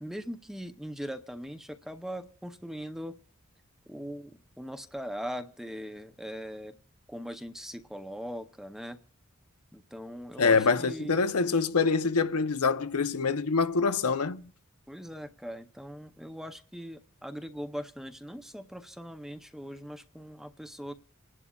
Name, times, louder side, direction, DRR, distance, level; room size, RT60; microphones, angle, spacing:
voice 1, 0.0-3.2 3.9-6.7 7.1-9.0 9.7-11.2 14.9-20.9, equal, ahead, 0.6 m, -40 dB
voice 2, 10.4-14.5, left 4 dB, 80° left, 0.7 m, -25 dB
28.0 x 11.0 x 2.3 m
head